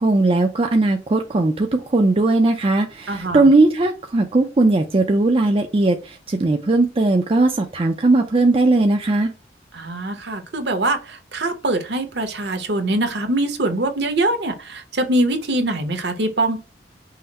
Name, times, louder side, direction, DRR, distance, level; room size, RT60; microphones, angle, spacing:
voice 1, 0.0-9.3, right 2 dB, 30° right, 4 dB, 0.4 m, -18 dB
voice 2, 3.1-3.5 9.7-16.6, right 1 dB, 65° right, 7 dB, 0.9 m, -23 dB
5.6 x 2.1 x 4.0 m, 0.31 s
head